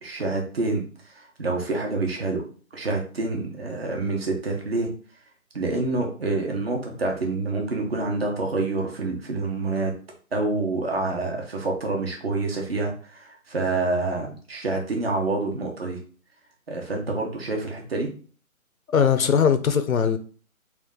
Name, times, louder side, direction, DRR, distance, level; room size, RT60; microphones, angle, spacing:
voice 1, 0.0-2.4 2.7-4.9 5.5-9.9 10.3-16.0 16.7-18.1, right 3 dB, 45° right, 1.1 m, -27 dB
voice 2, 18.9-20.2, left 7 dB, 70° left, 0.7 m, -20 dB
3.6 x 2.5 x 3.6 m
figure-of-eight pair, 165°, 42 cm